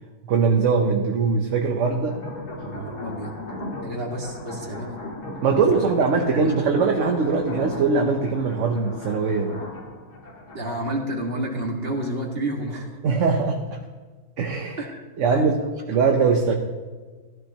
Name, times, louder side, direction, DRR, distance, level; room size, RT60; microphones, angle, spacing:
voice 1, 0.2-2.2 5.4-9.6 13.0-13.6 14.4-14.8 15.2-15.5 15.9-16.5, right 5 dB, 55° right, 3 dB, 1.1 m, -21 dB
sound 1, 1.9-10.8, left 2 dB, 80° left, 2.7 m, -36 dB
voice 2, 2.6-3.4 3.8-5.0 6.3-6.6 10.5-12.9 14.8-16.1, right 1 dB, 40° right, 0 dB, 2.0 m, -30 dB
15.0 x 12.5 x 3.0 m, 1.4 s
omnidirectional pair, 1.7 m